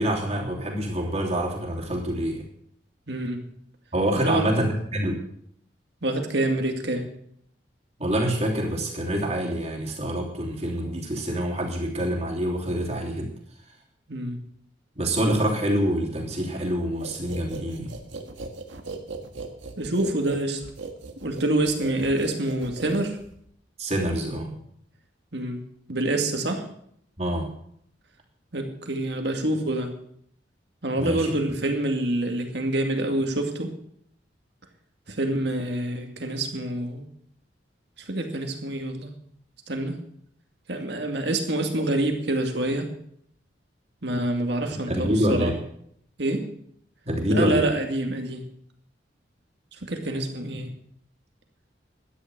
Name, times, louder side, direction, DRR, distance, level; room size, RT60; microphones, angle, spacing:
voice 1, 0.0-2.4 3.9-5.2 8.0-13.3 15.0-17.9 23.8-24.5 27.2-27.5 30.9-31.3 44.9-45.6 47.0-47.7, right 1 dB, 35° right, 0 dB, 3.1 m, -26 dB
voice 2, 3.1-3.4 4.2-4.8 6.0-7.1 14.1-14.4 19.8-20.7 21.2-23.2 25.3-25.6 25.9-26.7 28.5-29.9 30.8-33.7 35.1-37.1 38.0-39.1 39.7-40.0 40.7-42.9 44.0-45.5 46.2-46.5 47.3-48.4 49.8-50.7, right 1 dB, 65° right, 4 dB, 2.3 m, -26 dB
sound 1, 17.0-23.5, right 3 dB, 80° right, 1.7 m, -38 dB
12.5 x 10.0 x 6.8 m, 0.69 s
head